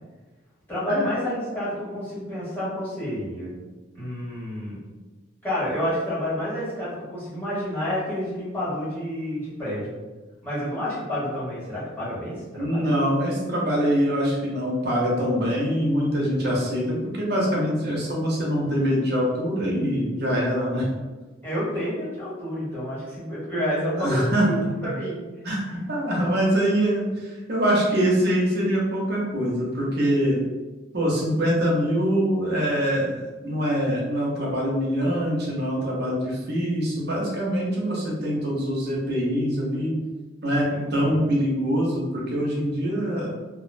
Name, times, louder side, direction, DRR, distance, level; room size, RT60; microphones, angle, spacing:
voice 1, 0.7-3.5 3.9-4.8 5.4-9.9 10.4-12.9 21.4-25.2 40.7-41.2, equal, 10° left, -10 dB, 1.0 m, -29 dB
voice 2, 12.6-20.9 24.0-24.5 25.4-30.4 30.9-40.0 40.4-43.3, equal, 55° right, -3 dB, 0.6 m, -24 dB
2.4 x 2.0 x 2.4 m, 1.2 s
head